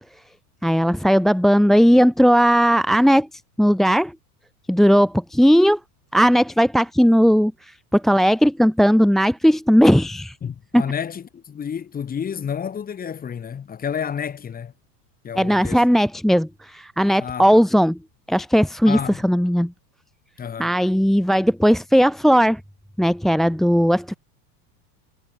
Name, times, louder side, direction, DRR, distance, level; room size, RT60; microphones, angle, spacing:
voice 1, 0.6-4.1 4.7-5.8 6.1-10.4 10.7-10.8 15.4-18.0 18.3-19.7 20.6-22.6 23.0-24.2, equal, ahead, 1.2 m, -17 dB
voice 2, 10.4-14.7 15.2-15.9 17.2-17.6 18.9-19.2 20.4-20.8, left 7 dB, 15° left, 3.7 m, -30 dB
supercardioid pair, 165°, 50 cm